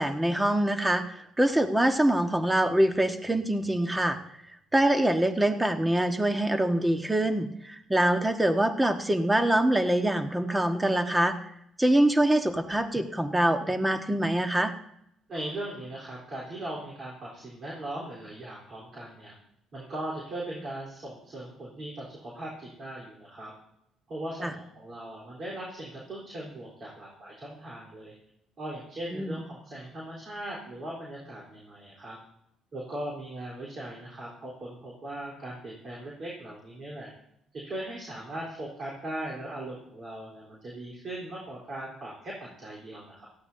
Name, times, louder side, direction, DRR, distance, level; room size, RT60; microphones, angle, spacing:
voice 1, 0.0-4.2 4.7-11.4 11.8-14.7 24.4-24.5 29.1-29.4, right 1 dB, 10° right, 7 dB, 1.5 m, -24 dB
voice 2, 15.3-19.3 19.7-23.5 24.1-28.1 28.6-32.2 32.7-37.1 37.5-42.3 42.6-43.3, right 1 dB, 50° right, -4 dB, 3.9 m, -39 dB
17.5 x 14.0 x 2.8 m, 0.75 s
hypercardioid pair, 55°, 0 cm